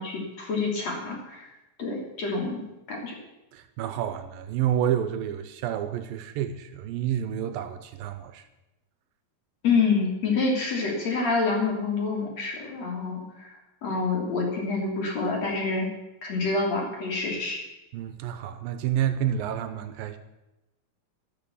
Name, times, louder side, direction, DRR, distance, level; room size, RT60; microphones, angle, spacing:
voice 1, 0.0-1.5 1.8-2.6 2.9-3.2 9.6-13.5 13.8-15.9 16.2-17.6, left 4 dB, 45° left, 0 dB, 4.0 m, -27 dB
voice 2, 3.5-8.5 17.9-20.2, right 10 dB, 80° right, 10 dB, 2.4 m, -29 dB
12.5 x 12.0 x 7.0 m, 0.98 s
omnidirectional pair, 4.4 m